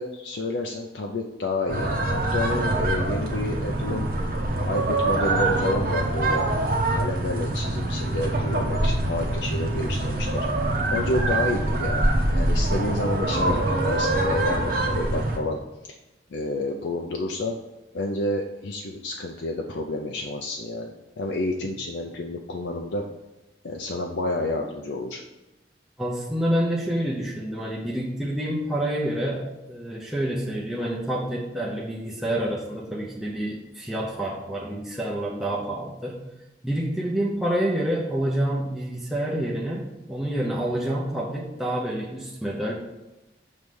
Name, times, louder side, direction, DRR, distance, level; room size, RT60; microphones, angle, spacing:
voice 1, 0.0-4.1 4.6-6.5 6.9-10.5 10.9-15.6 16.3-17.6 17.9-23.1 23.6-25.2, left 2 dB, 75° left, 2 dB, 0.5 m, -29 dB
sound 1, 1.7-15.4, right 2 dB, 55° right, 1.0 m, -24 dB
voice 2, 26.0-36.2 36.6-42.7, right 1 dB, ahead, -4 dB, 0.7 m, -28 dB
6.2 x 3.2 x 5.2 m, 1.0 s
head